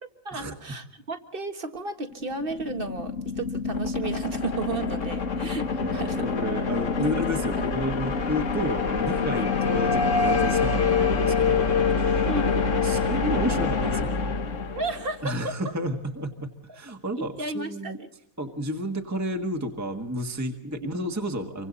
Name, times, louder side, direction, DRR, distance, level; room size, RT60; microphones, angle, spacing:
voice 1, 0.0-6.3 7.0-7.7 12.3-12.7 14.8-15.6 17.2-18.1 20.8-20.9, right 2 dB, 40° right, 7 dB, 1.8 m, -33 dB
sound 1, 2.1-15.3, left 4 dB, 65° left, 1.7 m, -27 dB
voice 2, 5.8-11.7 12.0-14.2 15.2-18.0 18.4-21.7, equal, 10° right, 3 dB, 1.6 m, -31 dB
sound 2, 8.1-15.1, left 6 dB, 40° left, 1.4 m, -27 dB
27.0 x 24.5 x 4.1 m, 0.74 s
omnidirectional pair, 1.4 m